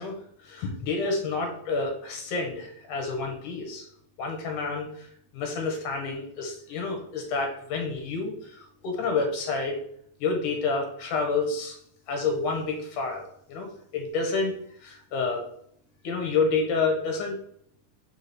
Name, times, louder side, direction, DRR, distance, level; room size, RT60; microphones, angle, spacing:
voice 1, 0.0-3.9 4.2-5.1 5.3-9.8 10.2-11.7 12.1-14.5 14.8-15.4 16.0-17.4, left 4 dB, 80° left, 3 dB, 2.9 m, -29 dB
5.1 x 5.0 x 4.3 m, 0.67 s
omnidirectional pair, 3.6 m